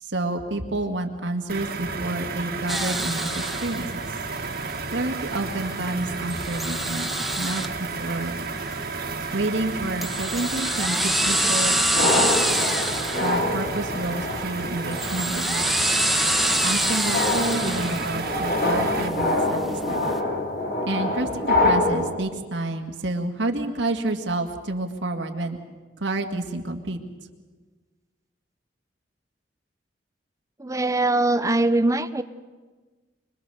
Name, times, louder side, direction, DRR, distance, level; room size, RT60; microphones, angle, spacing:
voice 1, 0.0-4.1 4.9-8.4 9.3-12.3 13.2-15.9 16.6-20.2 20.9-25.6 26.0-27.0, right 2 dB, 75° right, 3 dB, 1.9 m, -29 dB
sound 1, 1.5-19.1, right 4 dB, 55° right, 1.9 m, -32 dB
sound 2, 2.7-20.2, right 1 dB, ahead, 1.3 m, -28 dB
sound 3, 10.9-22.1, left 2 dB, 55° left, 4.6 m, -26 dB
voice 2, 30.6-32.2, right 2 dB, 20° right, 12 dB, 0.8 m, -22 dB
25.5 x 21.5 x 6.9 m, 1.3 s
head